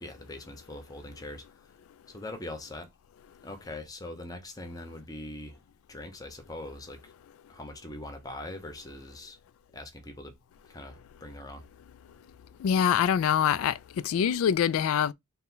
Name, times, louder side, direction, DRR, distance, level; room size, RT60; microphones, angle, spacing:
voice 1, 0.0-1.4 2.1-2.9 3.4-5.6 5.9-7.1 7.5-9.4 9.7-10.3 10.7-11.6, left 1 dB, 15° left, 0.7 m, -42 dB
voice 2, 12.6-15.1, left 8 dB, 85° left, 0.3 m, -25 dB
4.2 x 2.2 x 3.8 m
head